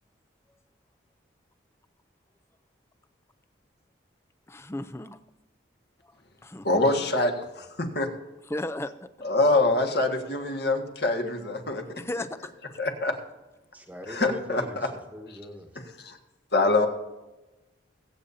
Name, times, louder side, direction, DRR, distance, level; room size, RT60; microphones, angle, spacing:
voice 1, 4.5-5.2 6.4-6.7 8.5-8.9 12.0-12.3, left 1 dB, 15° left, 11 dB, 0.5 m, -34 dB
voice 2, 6.6-8.1 9.2-11.8 12.8-13.2 14.1-14.9 15.3-15.4 15.8-16.2 16.5-16.9, left 2 dB, 55° left, 4 dB, 1.6 m, -25 dB
voice 3, 13.7-15.7, equal, 10° right, 4 dB, 1.2 m, -42 dB
22.5 x 8.5 x 2.7 m, 1.1 s
head